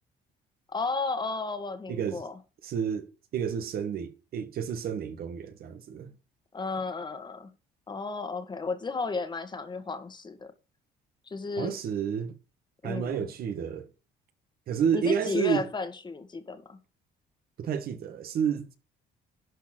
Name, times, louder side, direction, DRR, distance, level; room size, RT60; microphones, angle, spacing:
voice 1, 0.7-2.4 6.5-7.5 7.9-10.5 11.3-11.7 12.8-13.3 14.9-16.8, left 4 dB, 25° left, 1.8 m, -33 dB
voice 2, 1.9-2.2 2.6-3.1 3.3-6.1 11.6-12.3 12.8-13.9 14.7-15.6 17.6-18.8, right 7 dB, 60° right, 1.8 m, -30 dB
11.5 x 4.4 x 7.7 m
cardioid pair, 110°, 17 cm